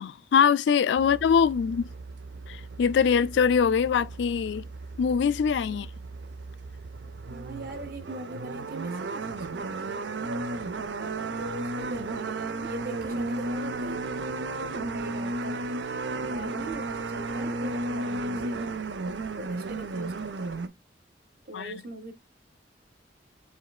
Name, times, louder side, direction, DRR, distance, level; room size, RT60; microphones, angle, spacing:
voice 1, 0.0-1.9 2.5-4.7 5.0-5.9 21.5-21.8, left 6 dB, 80° left, 0.3 m, -23 dB
sound 1, 1.0-20.7, right 2 dB, 85° right, 0.6 m, -34 dB
voice 2, 7.3-10.3 11.0-14.1 14.7-15.7 16.1-18.7 19.3-20.7 21.5-22.1, right 1 dB, 55° right, 1.0 m, -41 dB
7.1 x 3.3 x 2.3 m
head